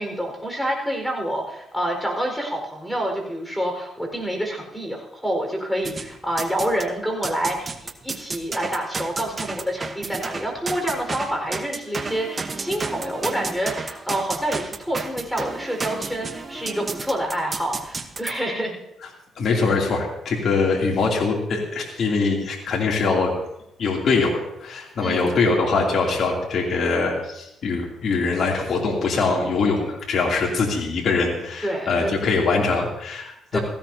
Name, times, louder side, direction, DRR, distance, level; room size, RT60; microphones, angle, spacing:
voice 1, 0.0-18.8 25.0-25.4 31.6-32.1 33.5-33.6, right 1 dB, 5° left, 2 dB, 4.8 m, -27 dB
sound 1, 5.8-6.9 7.2-18.3, right 4 dB, 35° right, 1.1 m, -32 dB
voice 2, 19.4-23.3 23.8-33.6, left 4 dB, 55° left, -1 dB, 3.0 m, -23 dB
17.5 x 15.5 x 2.8 m, 0.85 s
cardioid pair, 90°, 0 cm